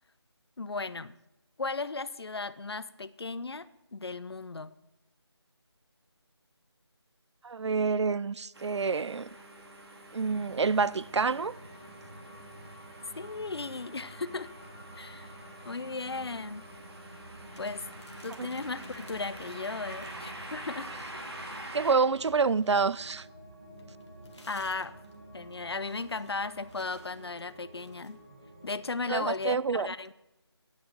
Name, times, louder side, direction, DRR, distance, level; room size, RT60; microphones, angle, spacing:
voice 1, 0.6-1.1 1.6-4.7 13.2-14.5 15.0-15.3 15.6-16.7 17.6-17.9 18.2-20.9 24.5-24.9 25.3-28.2 28.6-30.1, left 3 dB, 65° left, 0.5 m, -36 dB
voice 2, 7.4-9.3 10.1-11.5 18.4-18.5 21.7-23.3 29.1-29.9, right 5 dB, 85° right, 0.4 m, -27 dB
sound 1, 8.5-21.9, right 1 dB, 65° right, 2.1 m, -46 dB
sound 2, 10.2-29.6, right 1 dB, 30° right, 1.7 m, -50 dB
sound 3, 17.5-20.4 20.7-23.1 23.8-28.2, left 2 dB, 85° left, 2.1 m, -59 dB
11.5 x 6.6 x 5.9 m
figure-of-eight pair, 180°, 14 cm